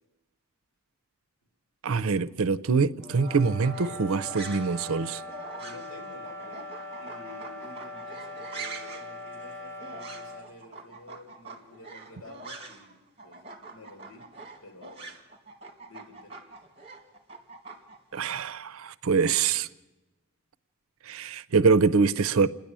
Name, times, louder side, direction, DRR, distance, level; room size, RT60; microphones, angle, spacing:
voice 1, 1.8-5.2 18.1-19.7 21.1-22.5, right 5 dB, 80° right, 0.6 m, -24 dB
sound 1, 3.0-10.5, left 1 dB, 10° left, 3.0 m, -41 dB
sound 2, 3.2-12.9 13.2-18.2, right 4 dB, 25° right, 2.0 m, -44 dB
voice 2, 5.5-12.9 13.2-14.3 14.6-15.1 15.9-16.4, left 2 dB, 80° left, 3.0 m, -49 dB
28.5 x 10.5 x 8.8 m
head